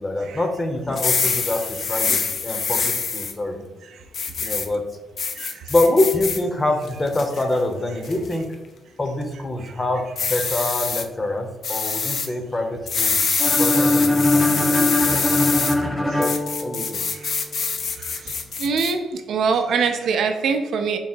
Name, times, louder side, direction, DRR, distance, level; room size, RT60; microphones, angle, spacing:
voice 1, 0.0-3.6 4.4-4.8 5.7-8.5 9.0-10.0 10.3-13.2 13.6-15.5 15.9-17.0, left 2 dB, 30° left, 5 dB, 0.8 m, -25 dB
sound 1, 0.9-3.3 4.1-4.7 5.2-6.4 6.9-7.4 8.0-8.3 10.2-11.0 11.6-12.3 12.9-15.8 16.2-18.9, left 5 dB, 60° left, 0.5 m, -25 dB
sound 2, 13.4-17.3, left 2 dB, 5° right, 0.5 m, -21 dB
voice 2, 18.6-19.0 19.3-21.0, right 5 dB, 70° right, 6 dB, 0.5 m, -22 dB
3.7 x 2.7 x 4.4 m, 1.1 s
supercardioid pair, 55°, 0 cm